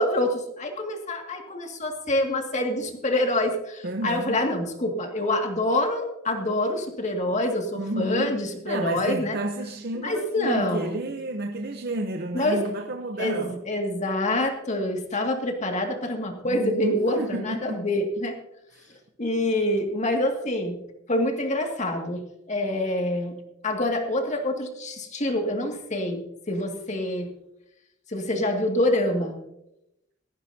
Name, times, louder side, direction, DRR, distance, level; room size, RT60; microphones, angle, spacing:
voice 1, 0.0-9.4 10.0-11.0 12.3-12.6 13.2-18.4 19.2-20.8 21.1-23.4 23.6-27.3 28.1-29.4, left 1 dB, 35° left, 2.1 m, -26 dB
voice 2, 3.8-4.4 7.8-13.6 16.4-17.9 18.7-19.0, right 1 dB, 50° right, 0.8 m, -31 dB
18.5 x 14.5 x 2.7 m
head